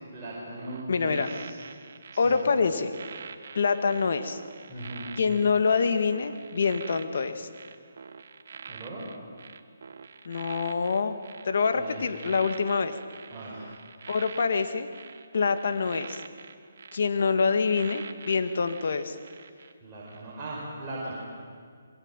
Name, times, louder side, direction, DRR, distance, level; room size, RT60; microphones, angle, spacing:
voice 1, 0.1-1.6 2.1-2.4 4.7-5.1 8.7-9.1 11.7-12.2 13.3-13.6 19.8-21.1, right 1 dB, 15° right, -8 dB, 5.9 m, -39 dB
sound 1, 0.6-19.7 20.1-20.3, right 5 dB, 55° right, 1.7 m, -46 dB
voice 2, 0.9-1.3 2.2-2.9 3.5-4.4 5.2-7.5 10.3-11.2 11.4-12.9 14.1-14.9 15.3-16.2 16.9-19.2, left 5 dB, 60° left, 9 dB, 2.1 m, -25 dB
27.0 x 22.5 x 9.1 m, 2.1 s
hypercardioid pair, 165°, 0 cm